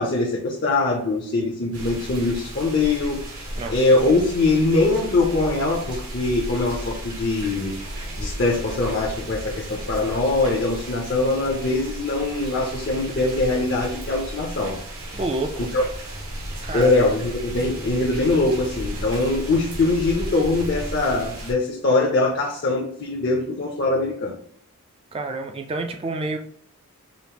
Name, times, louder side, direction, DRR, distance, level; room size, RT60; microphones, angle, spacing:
voice 1, 0.0-7.7 8.2-14.8 15.7-15.8 16.7-24.4, left 2 dB, 50° left, -1 dB, 0.6 m, -22 dB
sound 1, 1.7-21.5, right 1 dB, 85° right, 1.3 m, -34 dB
voice 2, 3.6-3.9 15.1-15.7 16.6-17.0 25.1-26.4, right 2 dB, 25° right, 5 dB, 0.3 m, -28 dB
5.1 x 2.5 x 2.9 m, 0.66 s
head